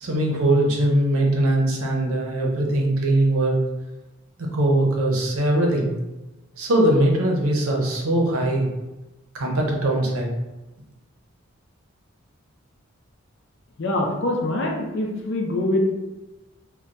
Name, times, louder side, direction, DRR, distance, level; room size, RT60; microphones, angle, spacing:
voice 1, 0.0-3.6 4.4-5.9 6.6-8.7 9.3-10.3, right 1 dB, 85° right, 0 dB, 0.7 m, -21 dB
voice 2, 13.8-15.8, left 1 dB, 55° left, 1 dB, 0.5 m, -24 dB
2.3 x 2.2 x 3.9 m, 1.0 s
head